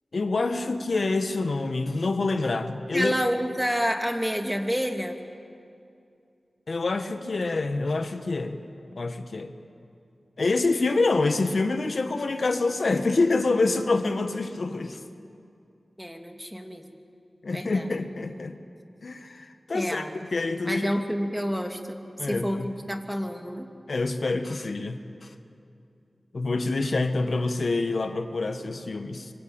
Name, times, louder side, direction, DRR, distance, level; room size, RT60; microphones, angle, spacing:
voice 1, 0.1-3.1 6.7-8.6 9.0-9.5 10.4-15.0 17.4-18.5 19.0-20.0 20.3-20.9 22.2-22.7 23.9-25.3 26.3-29.3, left 3 dB, 70° left, 7 dB, 1.5 m, -26 dB
voice 2, 2.9-5.2 16.0-16.8 17.5-17.9 19.7-20.1 20.6-23.7, equal, 5° right, 4 dB, 2.6 m, -29 dB
25.5 x 24.0 x 8.9 m, 2.5 s
cardioid pair, 50°, 0 cm